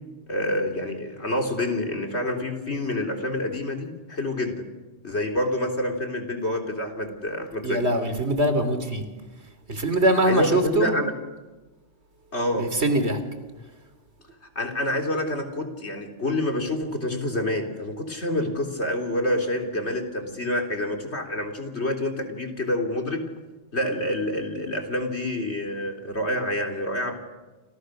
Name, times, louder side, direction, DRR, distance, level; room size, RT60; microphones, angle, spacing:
voice 1, 0.3-4.7 5.0-7.8 10.3-11.1 12.3-12.7 14.6-23.2 23.7-27.2, left 1 dB, 90° left, 4 dB, 3.8 m, -27 dB
voice 2, 7.6-9.0 9.7-11.0 12.6-13.2, right 1 dB, 80° right, 9 dB, 3.5 m, -22 dB
29.5 x 28.0 x 6.6 m, 1.2 s
omnidirectional pair, 1.1 m